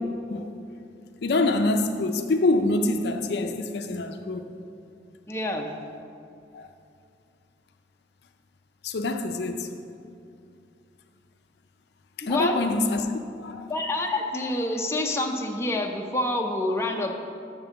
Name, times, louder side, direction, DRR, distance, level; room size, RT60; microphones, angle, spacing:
voice 1, 1.2-4.5 6.5-6.7 8.8-9.7 12.2-13.1 13.4-13.7, left 2 dB, 60° left, 0.4 m, -25 dB
voice 2, 5.3-5.7 12.2-12.6 13.7-17.1, left 1 dB, 15° left, 0.5 m, -27 dB
7.1 x 5.4 x 6.7 m
head